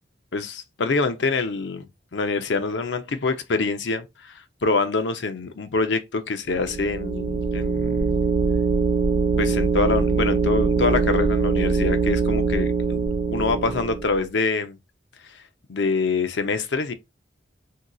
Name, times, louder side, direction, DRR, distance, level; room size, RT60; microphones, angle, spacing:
voice 1, 0.3-8.2 9.4-14.8 15.7-16.9, left 4 dB, 75° left, 0.6 m, -25 dB
sound 1, 6.5-14.2, right 5 dB, 55° right, 0.6 m, -23 dB
2.8 x 2.3 x 3.7 m
head